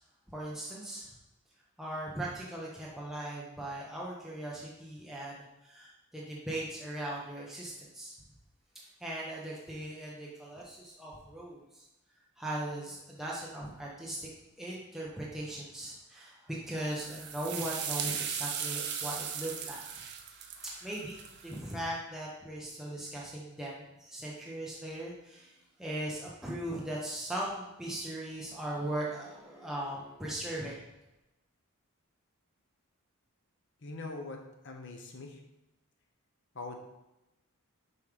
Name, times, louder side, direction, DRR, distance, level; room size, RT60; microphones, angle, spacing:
voice 1, 0.3-1.1 1.8-8.1 9.0-11.8 12.4-14.3 14.6-20.0 20.3-20.4 20.8-25.5 25.8-30.8, right 1 dB, ahead, -5 dB, 0.8 m, -39 dB
sound 1, 16.9-21.7, right 7 dB, 50° right, 0.6 m, -38 dB
voice 2, 33.8-35.4 36.5-36.8, left 3 dB, 55° left, 2 dB, 0.9 m, -42 dB
7.0 x 3.2 x 5.0 m, 0.94 s
head